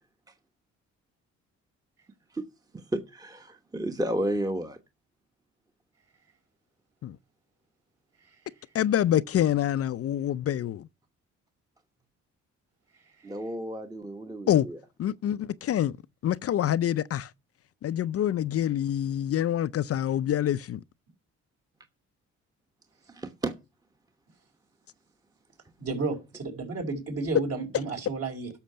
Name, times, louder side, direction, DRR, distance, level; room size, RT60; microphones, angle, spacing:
voice 1, 2.7-4.8 13.2-14.8 23.1-23.5, right 1 dB, 10° right, 1.1 m, -32 dB
voice 2, 8.7-10.9 14.5-14.7 15.0-16.0 16.2-17.3 17.8-20.8, left 11 dB, 50° left, 0.5 m, -26 dB
voice 3, 25.8-28.5, right 3 dB, 55° right, 5.0 m, -32 dB
11.5 x 6.5 x 5.6 m
cardioid pair, 90°, 30 cm